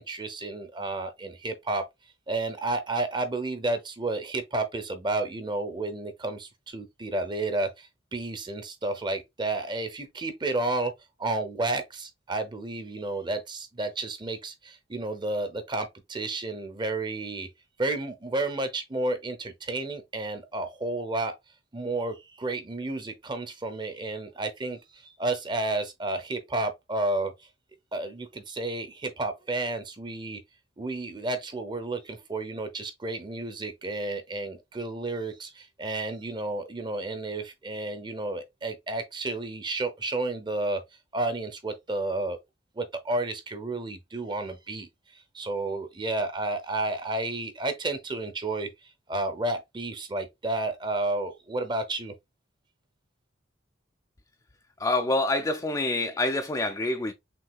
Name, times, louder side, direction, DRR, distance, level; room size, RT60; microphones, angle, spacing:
voice 1, 0.0-1.8 2.3-10.9 11.2-17.5 17.8-21.3 21.7-27.3 27.9-30.4 30.8-40.8 41.1-42.4 42.7-52.1, right 2 dB, 25° right, 0.7 m, -31 dB
voice 2, 54.8-57.1, left 2 dB, 15° left, 0.4 m, -26 dB
6.1 x 2.7 x 2.3 m
head